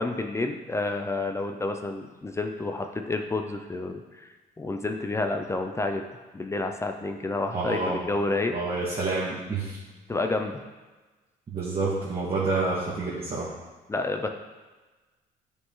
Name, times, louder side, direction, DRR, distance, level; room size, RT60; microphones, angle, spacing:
voice 1, 0.0-4.3 4.6-6.0 6.3-8.5 10.1-10.6 13.9-14.3, left 2 dB, 15° left, 5 dB, 0.6 m, -29 dB
voice 2, 7.5-8.0 8.5-9.8 11.5-13.5, right 3 dB, 35° right, -7 dB, 2.0 m, -28 dB
9.7 x 5.3 x 3.8 m, 1.2 s
cardioid pair, 110°, 17 cm